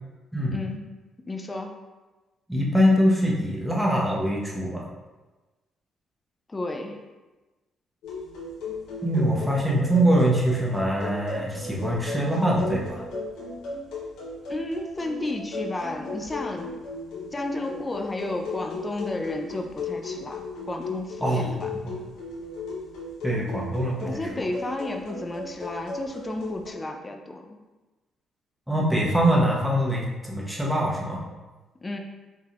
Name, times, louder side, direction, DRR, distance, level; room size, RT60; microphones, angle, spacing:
voice 1, 0.5-0.8 1.3-1.8 6.5-7.0 14.5-16.8 17.3-20.4 20.7-21.7 24.0-27.6 31.8-32.0, left 2 dB, 25° left, 4 dB, 0.5 m, -32 dB
voice 2, 2.5-4.8 9.0-13.0 21.2-21.5 21.8-21.9 23.2-24.4 28.7-31.2, equal, ahead, -4 dB, 0.9 m, -23 dB
sound 1, 8.0-26.7, left 3 dB, 85° left, 1.0 m, -36 dB
4.5 x 3.6 x 2.5 m, 1.2 s
cardioid pair, 90°, 0 cm